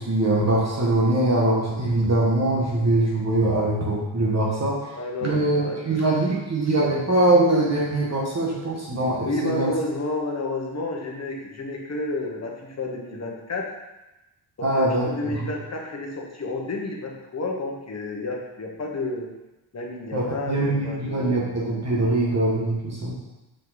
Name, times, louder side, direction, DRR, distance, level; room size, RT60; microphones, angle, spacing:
voice 1, 0.0-4.8 5.2-9.7 14.6-15.5 20.1-23.1, right 2 dB, 35° right, -4 dB, 1.4 m, -22 dB
voice 2, 5.0-6.0 9.2-13.7 14.6-19.3 19.7-21.5 23.1-23.2, left 2 dB, 35° left, 0 dB, 1.2 m, -31 dB
6.5 x 5.4 x 4.0 m, 0.99 s
wide cardioid pair, 150°, 46 cm